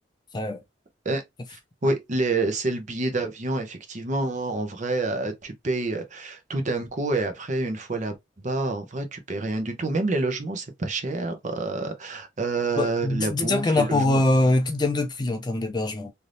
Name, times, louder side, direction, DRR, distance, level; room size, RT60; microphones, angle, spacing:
voice 1, 1.5-8.1 8.4-14.2, right 2 dB, 40° right, 0.7 m, -28 dB
voice 2, 12.8-16.1, left 2 dB, 20° left, 0.4 m, -23 dB
3.3 x 2.7 x 2.5 m
head